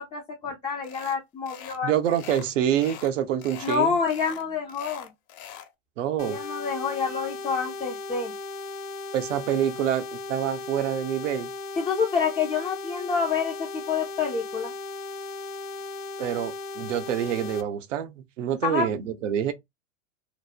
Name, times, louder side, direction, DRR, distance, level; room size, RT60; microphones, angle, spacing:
voice 1, 0.0-2.2 3.6-5.1 6.2-8.3 11.8-14.7 18.6-18.9, left 6 dB, 15° left, 0.4 m, -28 dB
sound 1, 0.8-1.2 1.5-3.1 3.4-3.8 4.1-5.7, left 10 dB, 45° left, 0.8 m, -43 dB
voice 2, 1.8-4.0 6.0-6.4 9.1-11.5 16.2-19.5, right 10 dB, 75° right, 0.7 m, -26 dB
sound 2, 6.2-17.6, left 3 dB, 85° left, 0.6 m, -37 dB
2.9 x 2.0 x 2.3 m
hypercardioid pair, 115°, 38 cm